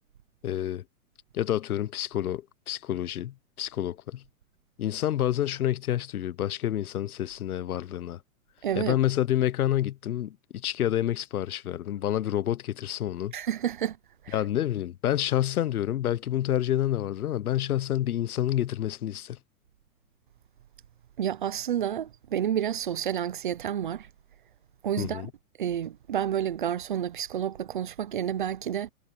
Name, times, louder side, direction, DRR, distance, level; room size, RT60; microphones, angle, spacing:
voice 1, 0.4-0.8 1.3-4.2 4.8-8.2 8.8-13.3 14.3-19.4 25.0-25.3, left 12 dB, 80° left, 1.0 m, -28 dB
voice 2, 8.6-9.0 13.3-14.0 14.2-14.4 21.2-24.1 24.8-25.3 25.6-28.9, right 10 dB, 35° right, 0.6 m, -30 dB
hypercardioid pair, 170°, 44 cm